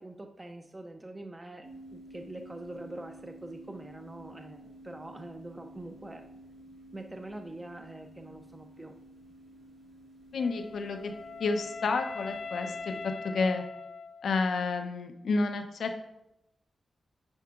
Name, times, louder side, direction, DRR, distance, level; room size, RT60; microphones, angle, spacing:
voice 1, 0.0-6.2 6.9-9.0, right 1 dB, 15° right, 4 dB, 0.4 m, -44 dB
sound 1, 1.6-13.1, right 1 dB, 75° right, 2.4 m, -52 dB
voice 2, 10.3-11.1 11.4-13.6 14.2-16.0, left 4 dB, 80° left, 6 dB, 0.8 m, -30 dB
Wind instrument woodwind instrument, 10.4-14.6, left 4 dB, 55° left, 0.3 m, -41 dB
9.0 x 4.7 x 3.7 m, 0.86 s
wide cardioid pair, 150°, 0 cm